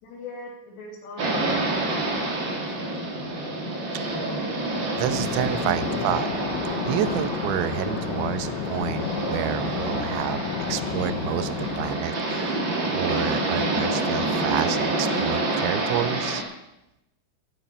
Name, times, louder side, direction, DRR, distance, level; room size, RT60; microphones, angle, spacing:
voice 1, 0.0-3.4, left 2 dB, 70° left, 1 dB, 4.7 m, -41 dB
sound 1, 1.2-16.4, right 2 dB, 40° right, 1.9 m, -27 dB
voice 2, 3.9-4.5 4.9-6.3 6.9-16.4, right 13 dB, 85° right, 13 dB, 3.0 m, -30 dB
sound 2, 5.0-12.0, left 12 dB, 85° left, 3.0 m, -32 dB
sound 3, 8.5-15.5, right 3 dB, 20° right, 3.0 m, -47 dB
11.5 x 9.0 x 8.8 m, 0.90 s
omnidirectional pair, 5.2 m